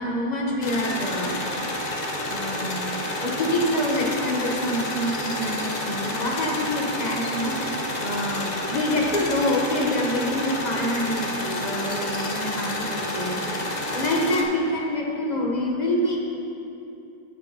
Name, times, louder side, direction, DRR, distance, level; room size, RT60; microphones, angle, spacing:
voice 1, 0.0-1.4 2.3-2.9 3.2-16.2, left 1 dB, 30° left, -2 dB, 1.0 m, -26 dB
sound 1, 0.6-14.4, left 1 dB, 65° left, 0.4 m, -29 dB
15.0 x 7.1 x 3.0 m, 2.7 s
omnidirectional pair, 1.9 m